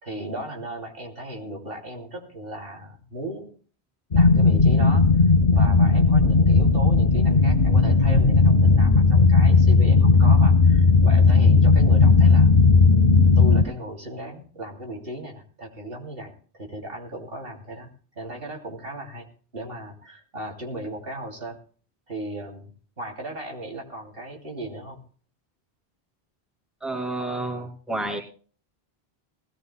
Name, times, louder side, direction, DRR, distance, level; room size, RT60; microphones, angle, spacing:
voice 1, 0.0-3.5 4.1-5.1 5.5-12.5 13.4-17.9 18.2-19.3 19.5-21.6 22.1-22.7 23.0-25.0, right 1 dB, 65° right, 1 dB, 3.2 m, -36 dB
sound 1, 4.1-13.6, left 4 dB, 50° left, 1.1 m, -16 dB
voice 2, 26.8-28.2, right 2 dB, ahead, 1 dB, 2.6 m, -30 dB
20.0 x 17.5 x 2.2 m, 0.42 s
omnidirectional pair, 1.0 m